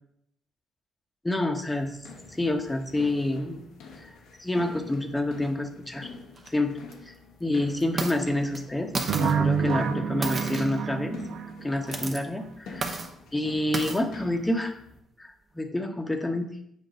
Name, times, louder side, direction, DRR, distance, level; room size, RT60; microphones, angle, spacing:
voice 1, 1.2-2.0 2.3-3.6 4.0-4.1 4.4-6.1 6.5-6.7 7.1-7.2 7.4-8.9 9.2-11.2 11.6-13.0 13.3-14.7 15.2-16.5, left 1 dB, 10° left, 5 dB, 0.9 m, -28 dB
sound 1, 1.5-15.0, left 4 dB, 90° left, 0.9 m, -47 dB
sound 2, 6.4-6.5 6.9-7.0 7.8-8.2 8.5-8.6 8.9-9.4 10.2-10.8 11.8-12.2 12.8-13.1 13.7-14.0, right 3 dB, 40° right, 0.8 m, -32 dB
sound 3, 9.1-11.9, right 7 dB, 80° right, 0.4 m, -28 dB
7.6 x 2.6 x 5.2 m, 0.73 s
cardioid pair, 90°, 0 cm